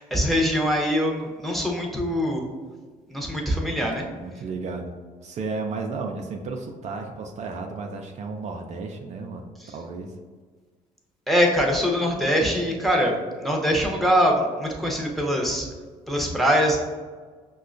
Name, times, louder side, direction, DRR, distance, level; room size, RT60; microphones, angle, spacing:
voice 1, 0.0-2.4 3.1-4.0 11.3-15.7 16.1-16.8, equal, ahead, -1 dB, 0.7 m, -23 dB
voice 2, 4.2-4.9 5.2-9.4 9.7-10.1, right 4 dB, 50° right, 2 dB, 0.4 m, -33 dB
5.3 x 2.2 x 2.5 m, 1.5 s
supercardioid pair, 75°, 15 cm